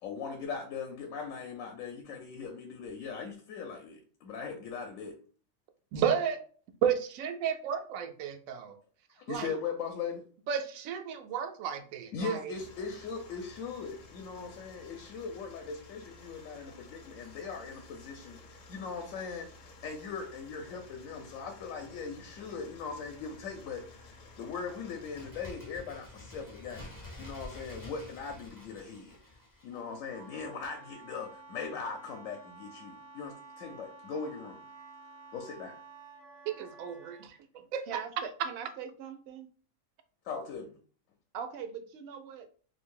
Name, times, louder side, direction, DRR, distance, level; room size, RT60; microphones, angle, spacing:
voice 1, 0.0-5.2 9.2-10.2 11.7-11.8 12.1-29.2 29.6-34.6 35.3-35.8 40.2-40.8, left 5 dB, 80° left, 4 dB, 1.0 m, -40 dB
voice 2, 5.9-6.4 6.8-8.8 9.3-9.5 10.5-12.5 36.5-37.4 37.7-37.8, right 8 dB, 90° right, 6 dB, 1.0 m, -32 dB
sound 1, 12.5-25.3, left 3 dB, 55° left, 0.7 m, -53 dB
Bird, 24.9-30.4 30.7-30.8, left 2 dB, 25° left, 0.5 m, -48 dB
Wind instrument woodwind instrument, 29.7-37.3, right 3 dB, 35° right, 0.4 m, -52 dB
voice 3, 37.9-39.5 41.3-42.5, right 7 dB, 65° right, 8 dB, 0.7 m, -41 dB
2.7 x 2.6 x 3.7 m, 0.42 s
omnidirectional pair, 1.4 m